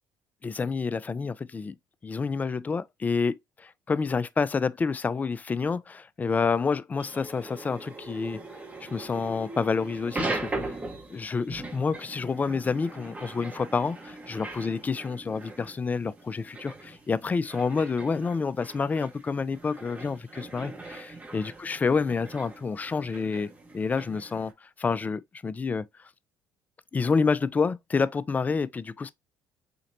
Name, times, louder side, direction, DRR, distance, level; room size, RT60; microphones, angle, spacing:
voice 1, 0.4-1.8 2.0-8.4 8.8-10.8 11.1-23.5 23.7-24.5 24.8-25.8 26.9-29.1, left 5 dB, 25° left, 0.4 m, -28 dB
sound 1, 7.0-24.5, right 2 dB, 20° right, 0.8 m, -40 dB
4.3 x 2.9 x 2.6 m
supercardioid pair, 85°, 6 cm